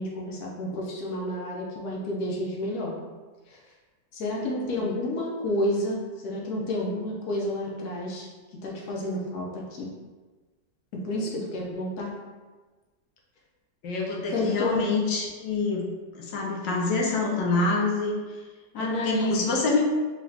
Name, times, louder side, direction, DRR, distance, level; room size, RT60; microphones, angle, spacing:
voice 1, 0.0-2.9 3.5-3.6 4.1-8.3 8.6-9.9 10.9-12.1 14.3-14.8 18.7-19.5, left 1 dB, 65° left, -2 dB, 1.2 m, -30 dB
voice 2, 4.4-4.9 13.8-15.8 16.1-18.2 18.8-19.9, left 3 dB, 85° left, -2 dB, 1.4 m, -27 dB
3.9 x 2.4 x 3.2 m, 1.3 s
omnidirectional pair, 1.9 m